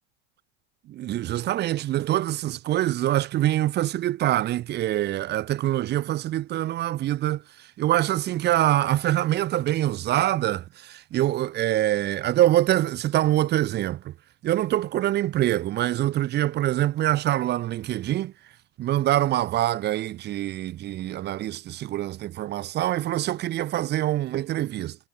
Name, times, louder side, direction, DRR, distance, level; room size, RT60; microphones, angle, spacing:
voice 1, 0.9-7.4 7.8-14.1 14.4-18.3 18.8-25.0, right 14 dB, 30° right, 0.5 m, -25 dB
cardioid pair, 155°, 38 cm